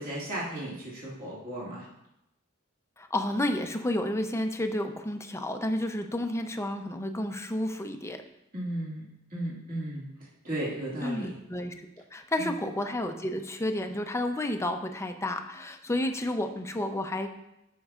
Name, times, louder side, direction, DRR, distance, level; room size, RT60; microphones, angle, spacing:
voice 1, 0.0-1.9 8.5-9.0 9.3-10.1 10.4-11.3 12.4-12.5, right 1 dB, 45° right, -7 dB, 2.0 m, -35 dB
voice 2, 3.0-8.2 11.0-11.7 12.1-17.3, left 1 dB, 15° left, 6 dB, 0.5 m, -31 dB
13.0 x 5.4 x 2.4 m, 0.87 s
head